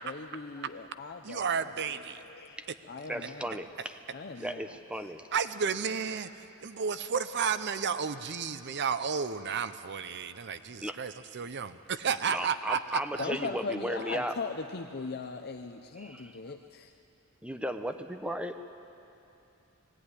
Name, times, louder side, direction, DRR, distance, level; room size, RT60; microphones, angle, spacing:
voice 1, 0.0-2.6 2.9-3.6 4.1-4.8 13.2-16.9, left 4 dB, 45° left, 5 dB, 0.7 m, -40 dB
voice 2, 1.2-2.2 5.3-13.2, right 6 dB, 50° right, 12 dB, 0.7 m, -32 dB
voice 3, 3.1-4.0 4.4-5.2 10.8-11.0 12.3-14.3 16.0-16.3 17.4-18.6, equal, 5° right, 7 dB, 0.8 m, -35 dB
20.0 x 16.0 x 9.9 m, 2.7 s
head